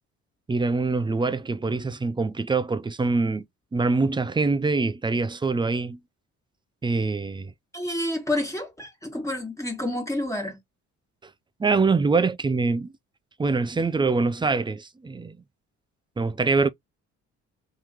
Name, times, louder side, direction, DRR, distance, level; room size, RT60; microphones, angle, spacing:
voice 1, 0.5-3.4 3.7-6.0 6.8-7.5 11.6-12.9 13.4-15.4 16.2-16.7, right 3 dB, 15° right, 0.5 m, -24 dB
voice 2, 7.7-10.6, left 1 dB, 10° left, 1.7 m, -29 dB
3.6 x 3.1 x 2.9 m
cardioid pair, 90°, 30 cm